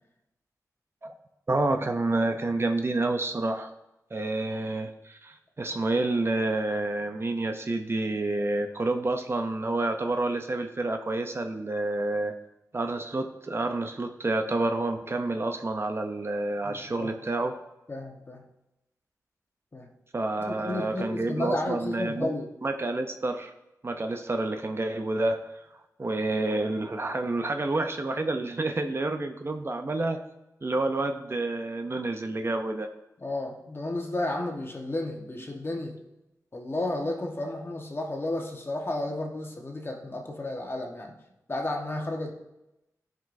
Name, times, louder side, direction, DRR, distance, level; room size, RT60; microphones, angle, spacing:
voice 1, 1.5-3.7 4.1-12.3 12.7-17.6 20.1-22.3 22.6-23.5 23.8-25.6 26.0-30.2 30.6-32.9, right 2 dB, 40° right, 6 dB, 0.6 m, -29 dB
voice 2, 16.6-17.1 17.9-18.4 19.7-19.9 20.4-22.5 33.2-35.9 36.5-41.2 41.5-42.3, left 2 dB, 40° left, 1 dB, 1.2 m, -32 dB
12.5 x 5.2 x 2.6 m, 0.92 s
wide cardioid pair, 70°, 6 cm